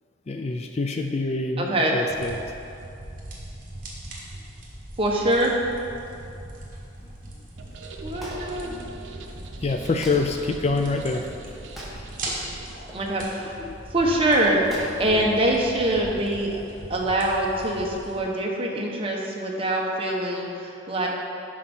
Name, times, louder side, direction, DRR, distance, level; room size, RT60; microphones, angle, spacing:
voice 1, 0.3-2.3 8.6-9.3 9.6-11.3 13.6-13.8 15.1-15.3, left 3 dB, 35° left, 5 dB, 0.4 m, -27 dB
voice 2, 1.6-1.9 5.0-5.5 8.0-8.7 12.9-13.6 13.9-16.6 16.9-21.1, right 1 dB, 30° right, -1 dB, 1.0 m, -24 dB
sound 1, 2.1-18.2, right 1 dB, 45° right, 1.6 m, -40 dB
sound 2, 7.6-12.8, right 3 dB, 85° right, 0.7 m, -43 dB
Wood, 8.1-16.1, equal, ahead, 1.4 m, -45 dB
12.0 x 4.6 x 4.4 m, 2.7 s
head